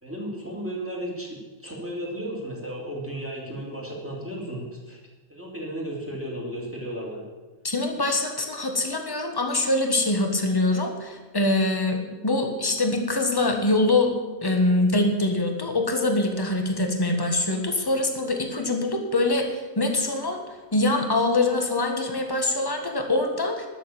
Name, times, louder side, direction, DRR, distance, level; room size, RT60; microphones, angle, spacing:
voice 1, 0.0-1.3 1.6-5.0 5.3-7.2, right 1 dB, 10° right, -4 dB, 3.3 m, -34 dB
voice 2, 7.6-14.1 14.4-20.4 20.7-23.7, left 2 dB, 20° left, 4 dB, 1.5 m, -24 dB
12.5 x 7.1 x 8.9 m, 1.3 s
omnidirectional pair, 1.3 m